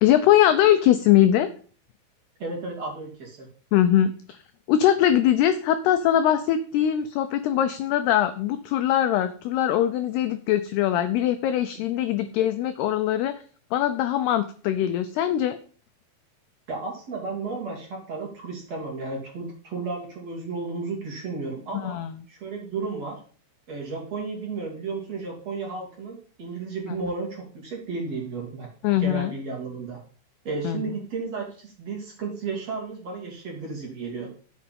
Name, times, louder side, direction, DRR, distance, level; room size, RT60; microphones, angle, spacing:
voice 1, 0.0-1.5 3.7-4.1 4.7-13.3 13.7-15.6 21.8-22.1 28.8-29.3 30.6-30.8, left 11 dB, 85° left, 10 dB, 2.3 m, -21 dB
voice 2, 2.4-3.5 12.0-12.2 16.7-22.0 22.3-23.2 23.7-28.7 29.0-30.0 30.4-34.3, right 4 dB, 40° right, -1 dB, 3.3 m, -33 dB
11.0 x 8.5 x 5.3 m, 0.42 s
omnidirectional pair, 5.5 m